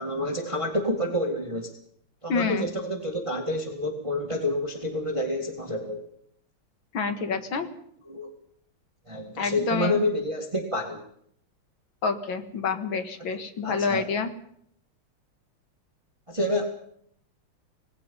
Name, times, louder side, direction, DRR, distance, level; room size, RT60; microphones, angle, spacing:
voice 1, 0.0-1.7 2.2-6.0 8.1-8.4 9.1-11.0 13.6-14.1 16.3-16.6, left 1 dB, 15° right, 3 dB, 2.1 m, -28 dB
voice 2, 2.3-2.7 6.9-7.7 9.4-10.0 12.0-14.3, left 5 dB, 70° left, 8 dB, 2.4 m, -28 dB
26.0 x 18.5 x 5.6 m, 0.69 s
omnidirectional pair, 2.3 m